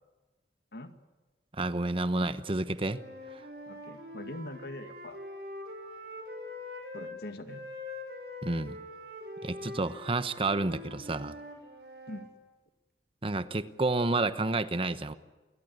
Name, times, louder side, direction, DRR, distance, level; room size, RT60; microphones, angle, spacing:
voice 1, 1.5-3.0 8.4-8.8 9.4-11.4 13.2-15.1, right 2 dB, 30° right, 1.0 m, -30 dB
Wind instrument woodwind instrument, 2.8-7.2 7.5-12.3, left 1 dB, 65° right, 6.6 m, -44 dB
voice 2, 3.7-5.2 6.9-7.7 12.1-12.3, left 1 dB, 60° left, 2.2 m, -42 dB
29.0 x 23.0 x 8.1 m
head